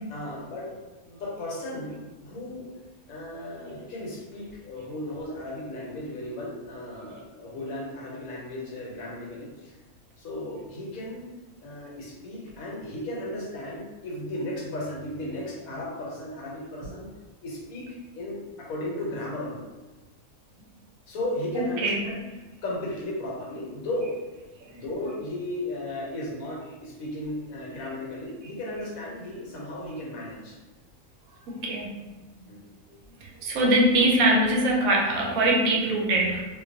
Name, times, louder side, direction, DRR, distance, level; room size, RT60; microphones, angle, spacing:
voice 1, 0.1-0.8 1.1-2.7 3.1-9.7 10.2-11.3 11.6-17.1 17.4-19.6 21.1-22.2 22.6-24.2 24.6-30.6 32.5-32.6, left 1 dB, 75° left, -4 dB, 1.2 m, -35 dB
voice 2, 21.5-22.0 24.6-24.8 31.5-31.9 33.2-36.4, right 1 dB, 75° right, -1 dB, 1.0 m, -23 dB
2.4 x 2.2 x 2.6 m, 1.2 s
omnidirectional pair, 1.5 m